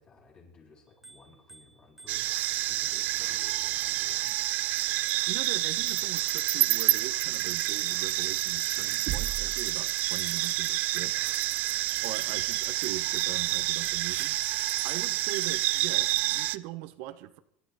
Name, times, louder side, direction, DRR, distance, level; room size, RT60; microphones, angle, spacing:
voice 1, 0.0-4.5, left 3 dB, 30° left, 7.8 m, -56 dB
Bicycle bell, 0.9-6.7 7.6-9.7 10.2-13.2 13.8-14.2 14.8-16.1, right 3 dB, 10° right, 1.6 m, -55 dB
sound 1, 2.1-16.6, right 16 dB, 50° right, 0.5 m, -28 dB
voice 2, 5.3-11.2 12.0-14.4 14.8-17.4, right 15 dB, 65° right, 1.1 m, -40 dB
26.5 x 12.5 x 4.2 m
cardioid pair, 150°, 4 cm